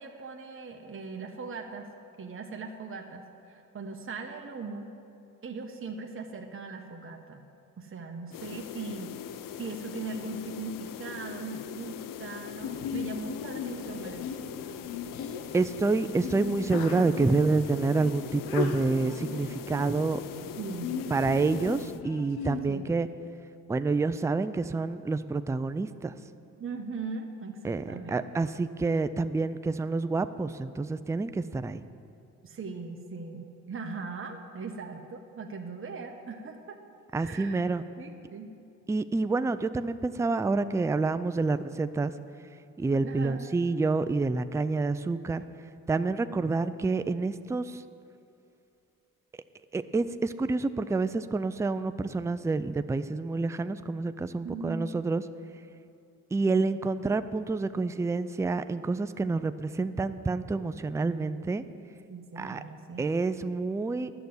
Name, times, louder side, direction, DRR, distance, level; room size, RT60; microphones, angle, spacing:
voice 1, 0.0-1.9 2.2-4.9 5.4-7.4 7.8-9.3 9.6-14.5 20.6-21.2 22.7-23.0 26.6-28.2 32.4-36.8 37.2-37.6 38.0-38.5 43.0-43.5 54.4-54.9 62.1-63.1, right 4 dB, 35° right, 2 dB, 1.1 m, -39 dB
sound 1, 8.3-22.0, left 10 dB, 65° left, 0.5 m, -41 dB
Sneeze, 12.6-22.6, left 6 dB, 85° left, 0.9 m, -38 dB
voice 2, 15.5-20.2 21.1-23.1 23.7-26.1 27.6-31.8 37.1-37.8 38.9-42.1 42.8-45.4 45.9-47.8 49.7-55.2 56.3-61.6 62.4-62.6 63.0-64.1, right 3 dB, 10° right, 12 dB, 0.4 m, -28 dB
11.0 x 6.9 x 7.9 m, 2.6 s
supercardioid pair, 60°, 36 cm